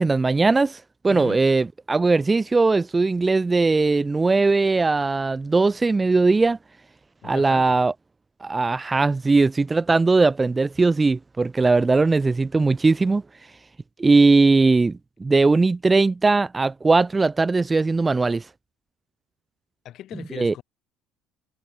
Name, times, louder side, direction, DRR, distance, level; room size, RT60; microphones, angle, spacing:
voice 1, 0.0-6.6 7.2-7.9 8.4-13.2 14.0-18.4 20.4-20.5, right 3 dB, 20° right, 0.5 m, -19 dB
voice 2, 1.1-1.5 7.2-7.8 19.8-20.6, left 12 dB, 50° left, 5.8 m, -38 dB
figure-of-eight pair, 60°, 0 cm